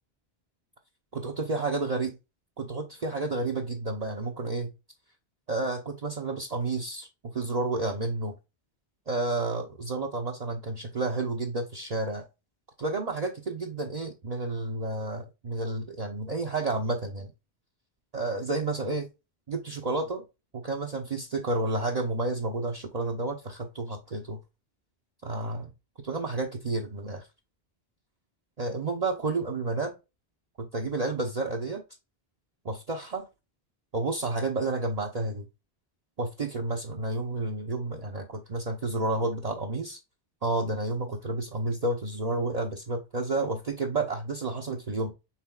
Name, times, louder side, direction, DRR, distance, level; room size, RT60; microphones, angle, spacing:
voice 1, 1.1-2.1 2.6-4.7 5.5-8.3 9.1-12.2 12.8-17.3 18.1-19.1 19.5-20.2 20.5-24.4 25.2-25.7 26.0-27.3 28.6-29.9 30.6-31.8 32.6-33.2 33.9-35.5 36.2-40.0 40.4-45.1, right 2 dB, 40° right, 0.8 m, -30 dB
5.8 x 3.7 x 2.3 m
omnidirectional pair, 1.1 m